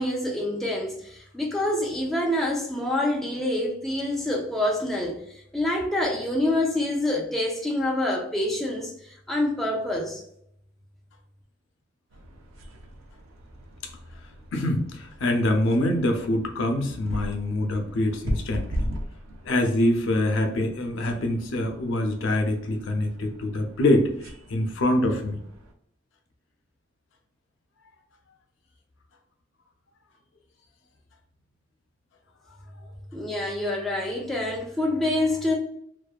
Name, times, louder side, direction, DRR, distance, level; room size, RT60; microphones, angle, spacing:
voice 1, 0.0-5.2 5.5-10.2 33.1-35.5, left 1 dB, ahead, 0.3 m, -26 dB
sound 1, 12.1-25.7, equal, 90° right, 0.5 m, -39 dB
voice 2, 14.5-18.9 19.4-25.4, left 1 dB, 75° left, 0.5 m, -25 dB
2.7 x 2.2 x 2.3 m
head